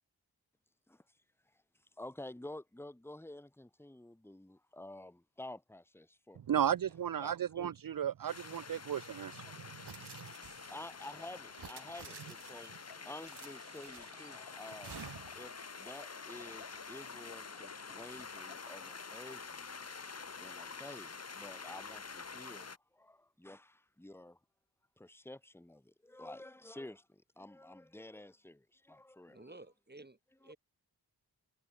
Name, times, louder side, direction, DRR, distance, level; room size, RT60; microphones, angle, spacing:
voice 1, 2.0-6.5 7.2-7.7 10.7-15.0 15.3-19.7 20.4-24.4 25.0-29.5 30.4-30.5, left 1 dB, 5° left, 1.5 m, -50 dB
voice 2, 6.5-9.5, right 9 dB, 55° right, 0.6 m, -34 dB
sound 1, 8.3-22.8, left 5 dB, 40° left, 1.2 m, -48 dB
sound 2, 9.8-10.9 11.5-12.7 13.2-14.3 14.8-15.5, right 6 dB, 75° right, 3.0 m, -51 dB
sound 3, 10.9-19.2, left 5 dB, 65° left, 4.0 m, -59 dB
voice 3, 29.3-30.6, right 2 dB, 25° right, 7.2 m, -54 dB
wide cardioid pair, 75°, 40 cm